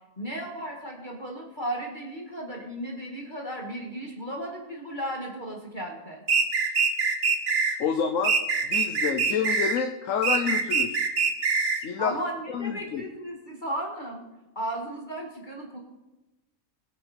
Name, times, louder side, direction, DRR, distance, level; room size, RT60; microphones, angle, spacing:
voice 1, 0.2-6.2 12.0-14.2 14.6-15.8, right 1 dB, 30° left, -1 dB, 2.0 m, -35 dB
sound 1, 6.3-7.8 8.2-9.8 10.2-11.8, right 5 dB, 60° right, 1.6 m, -24 dB
voice 2, 7.8-8.4 8.6-11.1 11.8-12.2 12.5-13.0, left 7 dB, 60° left, 6 dB, 1.2 m, -28 dB
20.5 x 8.9 x 4.4 m, 1.0 s
omnidirectional pair, 1.6 m